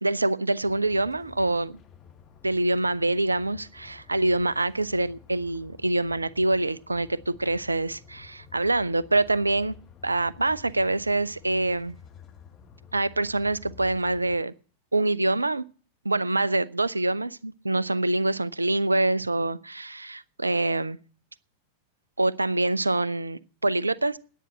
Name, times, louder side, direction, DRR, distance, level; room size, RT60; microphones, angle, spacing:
voice 1, 0.0-1.8 2.4-9.7 10.0-12.0 12.9-14.5 14.9-15.6 16.0-21.0 22.2-24.2, right 2 dB, 80° right, 0.5 m, -25 dB
sound 1, 0.6-14.4, left 7 dB, 30° left, 1.3 m, -51 dB
10.0 x 9.2 x 7.5 m
figure-of-eight pair, 90°, 0 cm